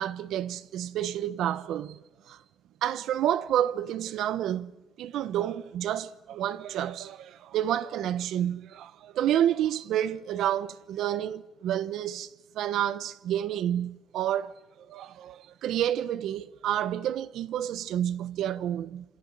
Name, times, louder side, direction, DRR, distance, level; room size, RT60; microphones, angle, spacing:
voice 1, 0.0-2.4 2.8-14.6 14.9-19.0, right 11 dB, 80° right, 1.1 m, -29 dB
27.0 x 26.0 x 7.8 m
cardioid pair, 90°, 0 cm